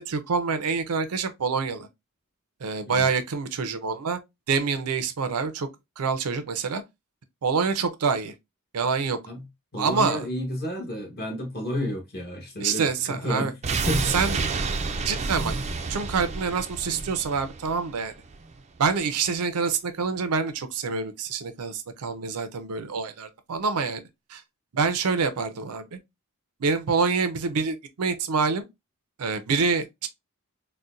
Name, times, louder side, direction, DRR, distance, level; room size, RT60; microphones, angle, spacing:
voice 1, 0.0-1.9 2.6-4.2 4.5-5.7 6.0-6.8 7.4-8.3 8.7-9.2 9.8-10.2 12.6-13.5 14.1-14.5 15.0-15.5 15.9-18.1 18.8-24.0 24.3-24.4 24.7-26.0 26.6-28.7 29.2-30.1, right 5 dB, 80° right, 0.5 m, -26 dB
voice 2, 9.7-13.6 13.9-14.4, left 1 dB, 45° left, 1.2 m, -31 dB
sound 1, 13.6-18.6 18.9-19.0, right 4 dB, 30° right, 0.4 m, -29 dB
4.0 x 2.1 x 2.4 m
head